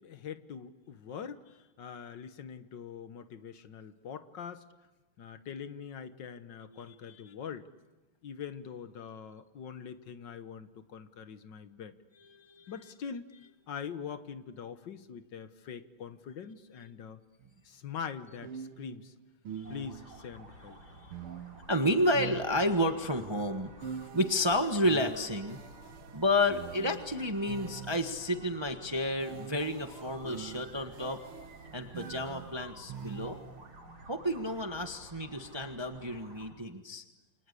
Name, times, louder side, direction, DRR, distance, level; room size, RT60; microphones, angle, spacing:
voice 1, 0.0-1.4 1.8-4.6 5.2-7.7 8.2-12.0 12.7-13.3 13.7-17.2 17.6-19.1 19.7-20.8, left 7 dB, 60° left, 11 dB, 1.7 m, -43 dB
voice 2, 6.7-7.3 12.3-12.7 19.5-19.7 21.0-21.1 21.7-25.6 26.1-31.2 31.7-33.4 34.1-37.0, left 1 dB, 15° right, 6 dB, 1.1 m, -31 dB
sound 1, 17.4-17.6 18.4-20.2 21.1-23.0 23.8-28.3 29.2-33.7, right 7 dB, 75° right, 2.1 m, -45 dB
sound 2, 19.6-36.5, right 1 dB, 45° right, 3.8 m, -52 dB
29.0 x 24.5 x 8.4 m, 1.1 s
omnidirectional pair, 2.4 m